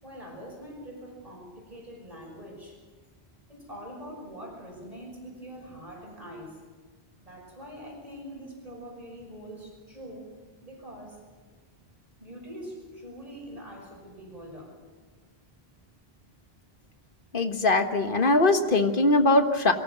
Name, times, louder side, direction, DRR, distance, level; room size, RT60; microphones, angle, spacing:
voice 1, 0.0-2.8 3.5-6.6 7.2-10.3 10.6-11.2 12.2-14.8, equal, 35° right, 0 dB, 6.0 m, -43 dB
voice 2, 17.3-19.7, left 2 dB, 55° left, 7 dB, 1.6 m, -21 dB
22.5 x 15.0 x 9.2 m, 1.4 s
omnidirectional pair, 1.1 m